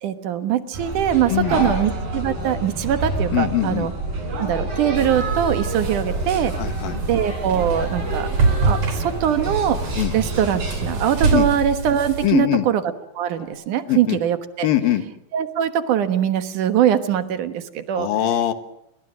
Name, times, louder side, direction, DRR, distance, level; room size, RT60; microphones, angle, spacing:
voice 1, 0.0-3.9 4.4-6.5 7.1-8.3 8.6-9.8 10.1-12.8 13.2-14.7 15.3-18.1, right 10 dB, 70° right, 9 dB, 2.8 m, -22 dB
sound 1, 0.7-11.1, right 2 dB, 90° right, 7.9 m, -28 dB
voice 2, 1.3-1.8 3.3-3.9 6.5-7.0 9.9-10.1 11.3-11.5 12.2-12.7 13.9-14.2 14.6-15.0 18.0-18.5, left 13 dB, 90° left, 9 dB, 3.3 m, -22 dB
sound 2, 5.0-12.3, right 4 dB, 50° right, 5.5 m, -26 dB
sound 3, 6.8-13.5, left 2 dB, 50° left, 7.9 m, -47 dB
29.0 x 22.5 x 6.4 m, 0.78 s
omnidirectional pair, 4.0 m